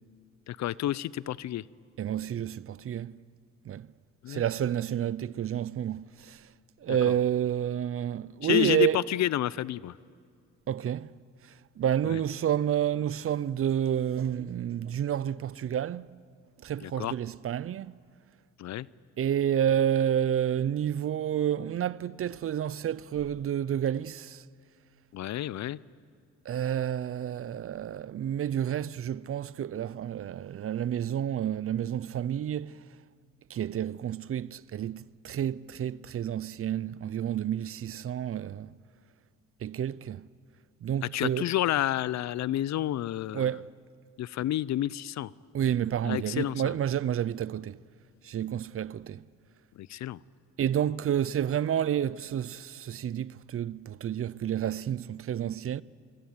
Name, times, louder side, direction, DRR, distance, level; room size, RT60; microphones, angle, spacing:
voice 1, 0.5-1.6 4.2-4.4 6.9-7.0 8.4-9.9 12.0-12.2 16.8-17.1 18.6-18.9 25.1-25.8 41.1-43.5 44.2-45.3 46.0-46.7 49.8-50.2, left 13 dB, 65° left, 0.6 m, -30 dB
voice 2, 2.0-3.2 3.6-3.9 4.3-6.5 6.8-9.0 10.7-11.1 11.8-16.1 16.6-18.0 19.2-24.4 26.5-32.8 33.5-38.7 39.6-40.3 40.8-41.5 43.3-43.7 45.5-47.8 48.2-49.2 50.6-55.8, right 10 dB, 50° right, 0.6 m, -30 dB
25.0 x 21.5 x 9.5 m
cardioid pair, 90°, 30 cm